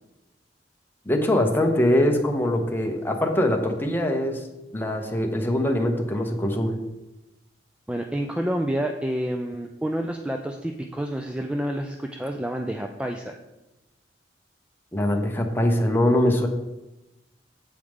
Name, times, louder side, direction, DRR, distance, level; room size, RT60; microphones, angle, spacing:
voice 1, 1.1-4.4 4.7-6.8 14.9-16.5, left 1 dB, 10° left, 3 dB, 1.0 m, -22 dB
voice 2, 7.9-13.4, right 1 dB, 5° right, 3 dB, 0.4 m, -29 dB
8.4 x 7.8 x 3.6 m, 0.99 s
head